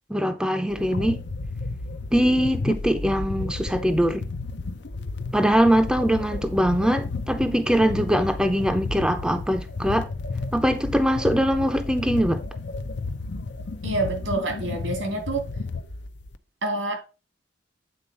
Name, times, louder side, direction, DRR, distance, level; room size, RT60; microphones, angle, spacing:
voice 1, 0.1-1.2 2.1-4.2 5.3-10.1 10.5-12.4, equal, 5° right, 0.6 m, -22 dB
sound 1, 0.7-16.4, left 3 dB, 65° left, 0.6 m, -32 dB
voice 2, 13.8-15.4 16.6-17.0, right 2 dB, 90° right, 2.5 m, -27 dB
8.7 x 4.2 x 5.3 m
head